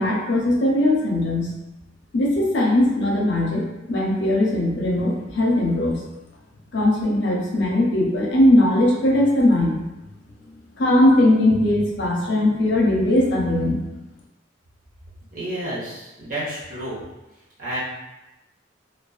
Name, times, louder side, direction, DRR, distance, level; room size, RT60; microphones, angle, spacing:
voice 1, 0.0-1.5 2.1-6.0 6.7-9.8 10.8-13.8, left 1 dB, 60° left, -2 dB, 0.5 m, -19 dB
voice 2, 15.3-17.0 17.6-17.8, right 1 dB, 40° right, -8 dB, 0.9 m, -30 dB
2.4 x 2.2 x 2.3 m, 1.0 s
head